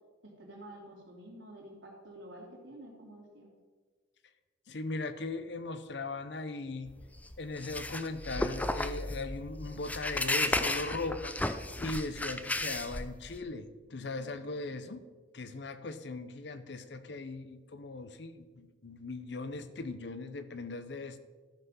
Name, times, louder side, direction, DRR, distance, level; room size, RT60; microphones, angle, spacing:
voice 1, 0.2-3.5, right 1 dB, 75° right, -1 dB, 2.9 m, -49 dB
voice 2, 4.7-6.9 7.4-11.4 11.8-15.1 15.3-21.2, left 3 dB, 60° left, 11 dB, 0.7 m, -39 dB
sound 1, 6.9-13.4, left 2 dB, 10° left, 0.4 m, -34 dB
13.0 x 5.8 x 5.6 m, 1.3 s
head